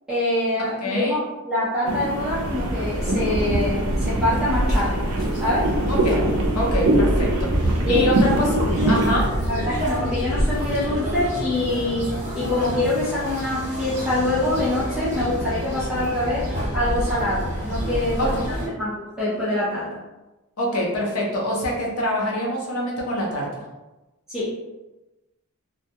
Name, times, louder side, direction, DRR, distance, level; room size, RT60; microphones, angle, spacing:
voice 1, 0.1-5.0 5.3-5.7 7.8-8.1 8.5-8.9 9.5-16.5 16.7-18.9 19.2-19.9 24.3-24.5, left 1 dB, 5° right, -11 dB, 0.5 m, -25 dB
voice 2, 0.8-1.2 5.9-6.2 6.5-8.5 8.9-9.3 18.2-18.5 20.6-23.6, equal, 80° left, -2 dB, 0.6 m, -25 dB
sound 1, 1.9-9.1, right 1 dB, 80° right, 0.5 m, -24 dB
Vehicle, 2.1-12.5, equal, 30° left, 1.1 m, -28 dB
sound 2, 8.1-18.7, equal, 30° right, 0.7 m, -29 dB
2.2 x 2.1 x 2.7 m, 1.1 s
head